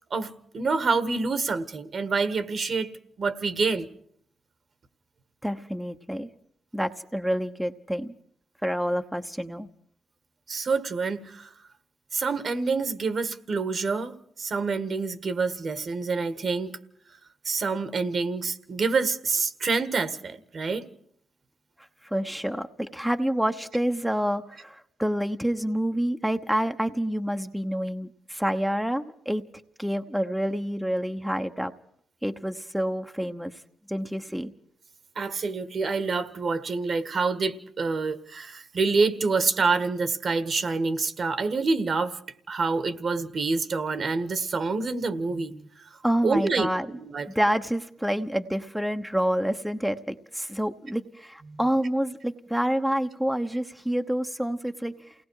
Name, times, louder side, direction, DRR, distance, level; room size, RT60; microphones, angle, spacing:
voice 1, 0.1-2.9 3.2-3.9 10.5-11.5 12.1-14.1 14.4-16.7 17.4-20.9 35.1-42.2 42.5-45.7 46.2-46.7 47.1-47.3 51.5-51.6, right 4 dB, 50° right, 11 dB, 1.7 m, -27 dB
voice 2, 5.4-6.3 6.7-8.1 8.6-9.7 22.0-29.4 29.8-31.7 32.2-33.6 33.9-34.5 46.0-46.9 47.3-55.1, equal, 5° right, 6 dB, 1.0 m, -28 dB
28.5 x 18.5 x 4.9 m, 0.67 s
cardioid pair, 75°, 0 cm